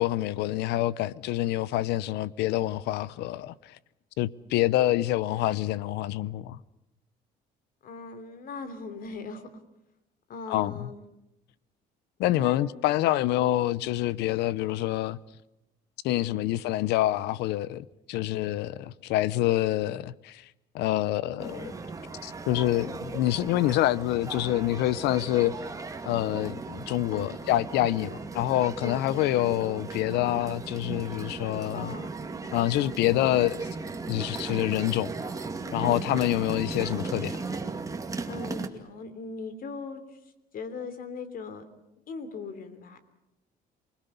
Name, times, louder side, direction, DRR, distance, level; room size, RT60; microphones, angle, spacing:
voice 1, 0.0-3.8 4.2-6.6 10.5-10.9 12.2-15.2 16.0-20.4 20.7-21.7 22.2-25.5 26.1-31.9 32.5-33.7 34.1-35.1 35.7-37.4, left 14 dB, 85° left, 0.8 m, -27 dB
voice 2, 7.8-9.5 10.3-11.0 12.2-12.7 16.3-16.4 21.4-21.5 27.1-27.3 28.8-29.3 31.7-32.2 35.8-36.0 38.2-40.2 40.5-41.6 42.1-43.0, left 4 dB, 60° left, 3.2 m, -39 dB
sound 1, 21.4-38.7, right 4 dB, 20° right, 2.3 m, -37 dB
28.0 x 20.5 x 6.9 m
cardioid pair, 110°, 17 cm